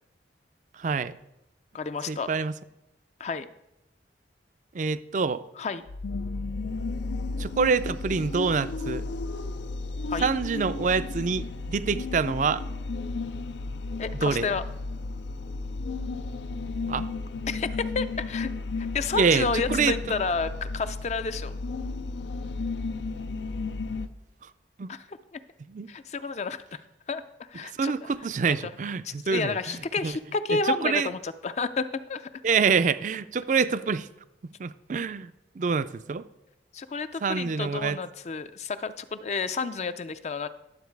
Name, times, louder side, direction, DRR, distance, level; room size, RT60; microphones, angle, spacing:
voice 1, 0.8-1.1 2.1-2.5 4.7-5.4 7.4-9.1 10.2-12.6 14.2-14.5 16.9-17.1 19.1-19.9 24.8-24.9 25.7-25.9 27.8-30.1 30.5-31.1 32.4-34.1 34.6-35.3 35.6-36.2 37.2-38.0, right 5 dB, 45° right, 14 dB, 0.4 m, -26 dB
voice 2, 1.7-2.3 3.2-3.5 5.6-5.8 10.1-10.3 14.0-14.6 17.5-18.5 18.8-21.5 24.9-25.4 25.9-26.8 27.1-27.2 27.5-28.1 28.5-28.7 29.0-32.3 36.7-40.5, left 4 dB, 40° left, 11 dB, 0.4 m, -31 dB
sound 1, 5.9-24.1, left 3 dB, 85° left, 0.5 m, -33 dB
11.5 x 7.3 x 4.6 m, 0.91 s
head